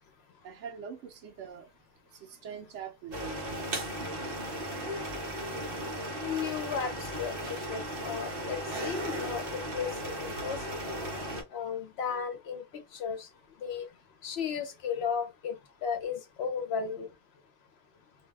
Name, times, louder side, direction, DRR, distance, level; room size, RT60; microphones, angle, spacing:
voice 1, 0.4-1.7 2.1-4.4, right 7 dB, 80° right, 1.0 m, -44 dB
sound 1, 3.1-11.4, right 1 dB, 55° right, 1.1 m, -36 dB
voice 2, 6.2-9.9 10.2-10.8 11.5-12.6 12.9-13.3 13.6-13.9 14.2-15.5 15.8-17.1, left 6 dB, 65° left, 0.9 m, -34 dB
2.6 x 2.2 x 3.2 m
omnidirectional pair, 1.2 m